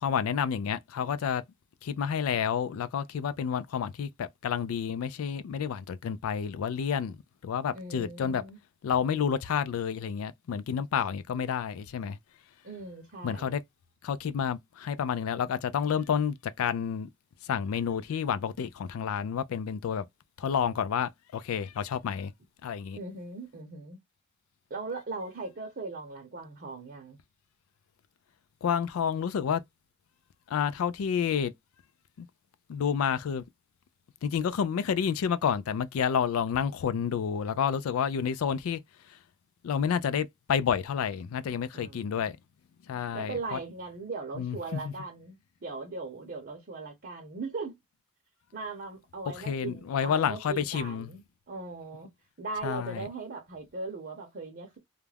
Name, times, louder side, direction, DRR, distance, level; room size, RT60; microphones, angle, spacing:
voice 1, 0.0-1.4 1.8-7.2 7.4-8.4 8.8-12.2 13.2-13.6 14.0-17.1 17.5-20.0 20.4-22.3 22.6-23.0 28.6-29.6 30.5-31.5 32.2-32.3 32.7-33.4 34.2-38.8 39.6-42.4 42.9-43.6 44.4-44.9 49.4-51.1 52.6-53.1, left 7 dB, 80° left, 0.3 m, -29 dB
voice 2, 7.7-8.6 12.6-13.6 23.0-24.0 24.7-27.2 41.7-42.3 43.1-47.7 48.5-52.1 52.4-54.8, right 3 dB, 45° right, 0.7 m, -39 dB
2.4 x 2.1 x 3.2 m
head